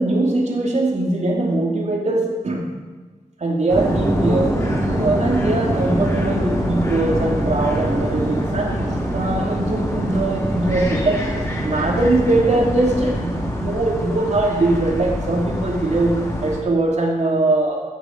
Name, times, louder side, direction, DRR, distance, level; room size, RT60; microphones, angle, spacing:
voice 1, 0.0-2.7 3.4-4.5 4.9-8.8 9.1-11.2 11.6-17.8, right 2 dB, 60° right, 0 dB, 2.6 m, -21 dB
sound 1, 3.7-16.6, left 1 dB, 20° left, 3.0 m, -28 dB
sound 2, 3.7-13.7, right 1 dB, 25° right, 2.5 m, -25 dB
15.0 x 6.9 x 5.8 m, 1.3 s
cardioid pair, 65°, 13 cm